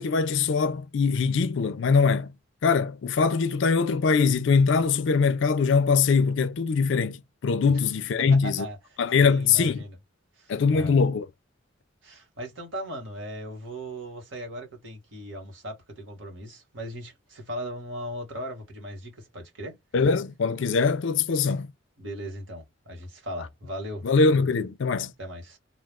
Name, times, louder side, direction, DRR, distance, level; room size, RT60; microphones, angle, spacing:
voice 1, 0.0-2.3 2.6-8.7 9.0-9.8 10.5-11.3 19.9-21.7 24.0-25.1, left 5 dB, 65° left, 0.4 m, -22 dB
voice 2, 8.2-10.0 10.4-10.9 12.0-19.8 22.0-24.1 25.2-25.6, equal, 70° right, 1.4 m, -38 dB
2.4 x 2.3 x 3.4 m
head